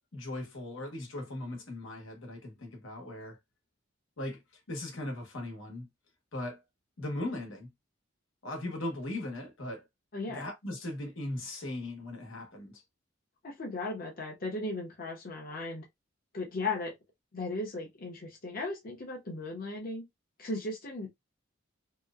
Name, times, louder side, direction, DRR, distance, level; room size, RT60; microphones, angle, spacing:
voice 1, 0.1-3.4 4.2-5.9 6.3-6.6 7.0-7.7 8.4-9.9 10.3-12.8, left 1 dB, 90° left, 1.1 m, -38 dB
voice 2, 10.1-10.5 13.4-15.9 16.3-16.9 17.3-20.0 20.4-21.1, left 2 dB, 50° left, 0.8 m, -36 dB
2.8 x 2.1 x 2.4 m
head